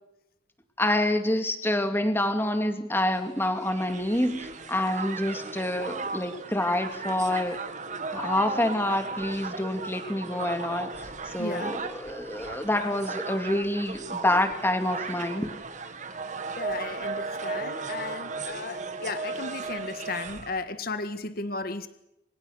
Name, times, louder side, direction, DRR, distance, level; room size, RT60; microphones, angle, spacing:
voice 1, 0.8-7.6 8.1-15.5, left 1 dB, 10° left, 7 dB, 2.4 m, -27 dB
Crowd, 3.2-20.6, right 4 dB, 40° right, 2.0 m, -36 dB
voice 2, 11.4-11.8 16.6-21.9, left 3 dB, 50° left, 10 dB, 1.6 m, -35 dB
28.0 x 26.5 x 6.5 m, 0.88 s
head